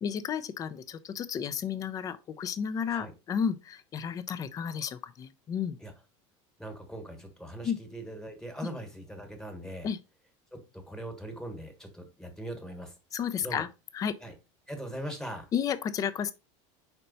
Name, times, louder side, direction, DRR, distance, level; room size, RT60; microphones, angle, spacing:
voice 1, 0.0-5.8 7.6-7.8 9.8-10.0 13.1-13.7 13.9-14.1 15.5-16.3, left 7 dB, 20° left, 0.5 m, -32 dB
voice 2, 6.6-9.9 10.5-12.9 13.4-13.7 14.2-14.3 14.7-15.5, right 1 dB, 5° left, 1.3 m, -41 dB
5.5 x 4.4 x 4.0 m
cardioid pair, 160°, 16 cm